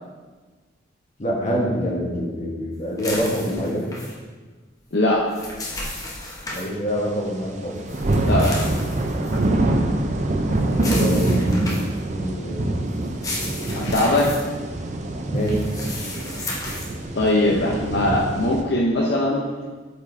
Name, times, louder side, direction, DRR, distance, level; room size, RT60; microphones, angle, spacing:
voice 1, 1.2-3.9 6.5-7.8 10.7-11.7 12.1-12.9 15.3-15.6 15.9-16.2, equal, 35° left, -3 dB, 1.2 m, -26 dB
sound 1, 3.0-4.1 5.1-6.7 7.9-9.4 10.7-12.0 13.0-14.4 15.4-16.9, left 2 dB, 20° left, 0.9 m, -33 dB
voice 2, 4.9-5.2 8.3-8.7 13.7-14.3 17.1-19.4, left 1 dB, 55° left, -4 dB, 0.7 m, -20 dB
sound 2, 7.3-7.4 7.6-18.6, right 2 dB, 35° right, 0.5 m, -24 dB
8.2 x 5.2 x 2.7 m, 1.4 s
head